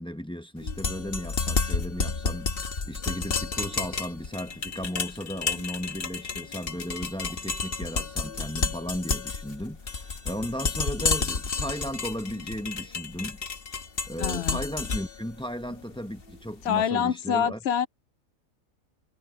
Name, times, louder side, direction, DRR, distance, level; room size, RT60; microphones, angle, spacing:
voice 1, 0.0-13.4 14.1-17.6, equal, 5° left, 1.0 m, -35 dB
sound 1, 0.6-16.7, left 4 dB, 45° left, 1.4 m, -31 dB
voice 2, 14.2-14.6 16.6-17.9, left 8 dB, 60° left, 0.7 m, -26 dB
omnidirectional pair, 1.4 m